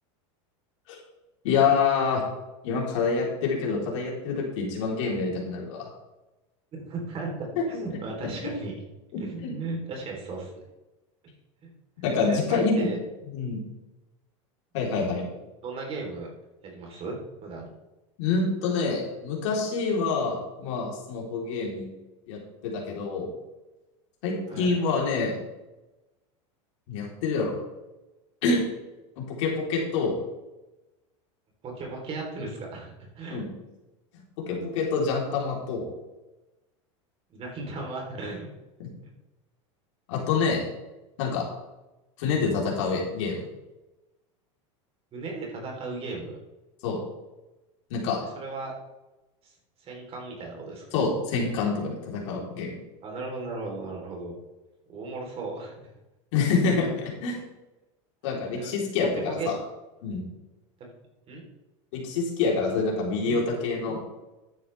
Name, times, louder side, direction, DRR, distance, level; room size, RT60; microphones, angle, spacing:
voice 1, 1.4-2.2 2.6-5.9 7.6-7.7 8.4-8.6 9.1-9.5 12.0-12.9 13.3-13.6 14.7-15.2 18.2-21.9 22.3-23.3 24.2-25.4 26.9-27.5 28.4-28.6 29.2-30.2 33.3-33.5 34.4-35.9 40.1-40.6 41.2-41.4 42.2-43.4 46.8-47.0 47.9-48.2 50.9-52.8 56.3-57.4 58.2-59.6 60.0-60.2 61.9-64.0, left 4 dB, 70° left, -2 dB, 3.8 m, -26 dB
voice 2, 6.7-8.7 9.1-10.5 11.6-11.7 12.3-13.0 15.6-16.3 16.6-17.2 17.4-17.7 24.5-24.7 31.6-33.4 37.3-38.5 42.2-42.3 45.1-46.4 48.3-48.7 49.8-50.8 53.0-54.3 54.9-55.7 56.5-56.6 58.3-58.7 59.3-59.5 60.8-60.9 61.3-61.5, right 3 dB, 35° right, 0 dB, 3.7 m, -36 dB
11.5 x 9.6 x 3.5 m, 1.1 s
supercardioid pair, 115°, 16 cm